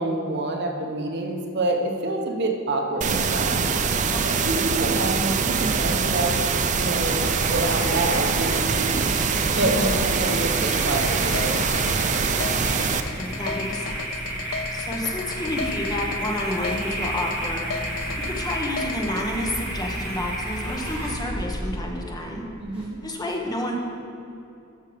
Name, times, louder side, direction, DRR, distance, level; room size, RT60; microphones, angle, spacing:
voice 1, 0.0-3.7 4.2-6.5 6.7-9.1 9.5-12.2 22.6-23.0, right 2 dB, 55° right, 3 dB, 1.0 m, -27 dB
sound 1, 3.0-13.0, right 5 dB, 35° right, 0.5 m, -24 dB
voice 2, 4.1-4.5 9.5-10.0 13.1-14.0 14.7-22.4 23.0-23.8, left 1 dB, 20° left, 0 dB, 1.1 m, -30 dB
sound 2, 6.6-22.9, right 1 dB, 5° right, 2.5 m, -32 dB
sound 3, 10.8-19.2, left 6 dB, 90° left, 0.5 m, -34 dB
13.0 x 5.6 x 5.1 m, 2.7 s
head